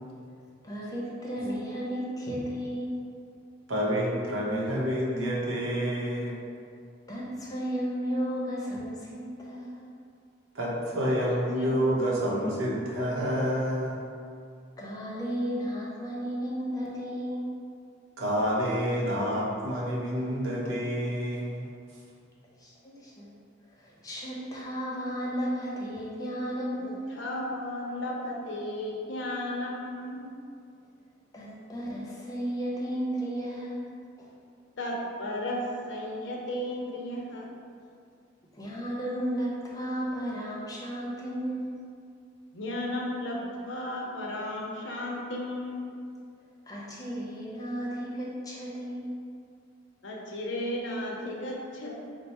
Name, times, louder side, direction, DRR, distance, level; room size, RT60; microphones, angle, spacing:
voice 1, 0.6-3.0 7.1-9.9 14.8-17.5 22.6-22.7 23.0-23.3 23.8-27.0 31.3-33.9 34.2-34.3 38.5-41.7 46.7-49.1, equal, 20° left, -5 dB, 0.7 m, -33 dB
voice 2, 3.7-6.3 10.5-14.0 18.2-21.7, equal, 80° right, -5 dB, 0.8 m, -28 dB
voice 3, 11.4-11.8 26.8-30.3 34.8-37.5 42.5-45.9 50.0-52.0, left 1 dB, 65° left, -1 dB, 0.6 m, -34 dB
4.3 x 2.0 x 4.2 m, 2.3 s
head